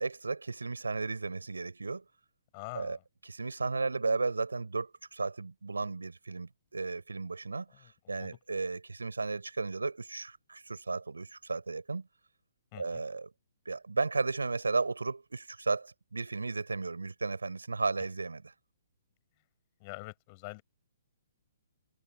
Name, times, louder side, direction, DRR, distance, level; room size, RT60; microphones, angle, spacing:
voice 1, 0.0-2.0 2.7-3.0 3.3-12.1 12.8-13.3 13.6-18.5, right 3 dB, 85° right, 4.9 m, -34 dB
voice 2, 2.5-3.0 7.7-8.4 12.7-13.0 19.8-20.6, left 27 dB, 35° left, 6.7 m, -45 dB
figure-of-eight pair, 130°, 0 cm